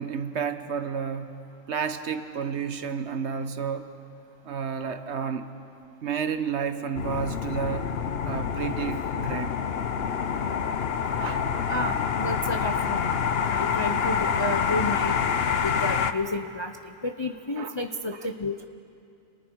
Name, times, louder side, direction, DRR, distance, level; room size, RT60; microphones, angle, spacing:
voice 1, 0.0-1.3 1.7-3.9 4.4-5.4 6.0-7.9 8.2-9.6 11.2-11.4 17.6-17.7, right 6 dB, 60° right, 9 dB, 1.2 m, -31 dB
sound 1, 6.9-16.1, left 7 dB, 55° left, 0.9 m, -27 dB
voice 2, 11.7-13.1 13.5-18.7, left 1 dB, 25° left, 5 dB, 0.6 m, -31 dB
29.0 x 27.5 x 4.7 m, 2.5 s
omnidirectional pair, 1.4 m